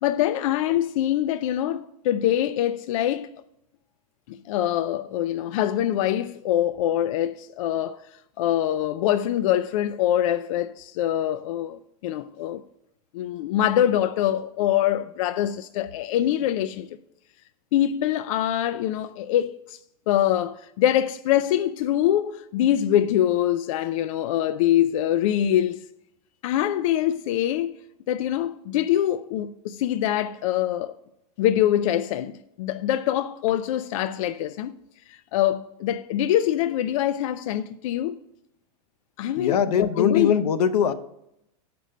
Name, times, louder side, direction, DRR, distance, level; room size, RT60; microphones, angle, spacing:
voice 1, 0.0-3.3 4.3-8.0 8.4-12.6 13.1-16.9 17.7-19.8 20.1-25.8 26.4-27.7 28.1-31.0 31.4-34.7 35.1-38.2 39.2-40.4, left 11 dB, 60° left, 0.4 m, -24 dB
voice 2, 39.4-40.9, left 7 dB, 85° left, 0.7 m, -21 dB
7.7 x 5.2 x 6.4 m
supercardioid pair, 150°, 19 cm